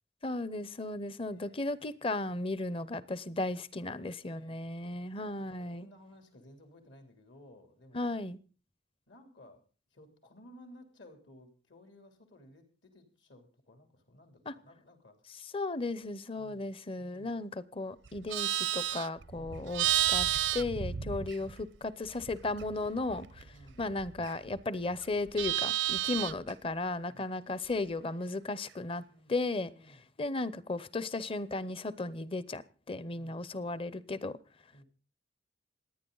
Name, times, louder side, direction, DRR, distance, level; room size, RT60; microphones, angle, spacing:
voice 1, 0.2-5.9 7.9-8.4 14.5-14.6 15.5-20.3 20.5-23.5 23.8-29.0 29.3-29.7 30.2-32.6 32.9-34.4, left 2 dB, 30° left, 0.7 m, -35 dB
voice 2, 1.3-1.9 3.7-4.6 5.5-8.2 9.1-9.6 9.9-15.4 16.4-16.7 17.0-17.4 19.3-19.6 23.5-23.9 27.1-27.4 28.9-30.1 33.1-33.5 34.7-34.8, left 1 dB, 70° left, 3.2 m, -57 dB
Livestock farm animals working animals, 18.1-21.8 22.1-24.6 24.9-26.5, right 12 dB, 70° right, 0.6 m, -32 dB
27.5 x 9.6 x 3.9 m
head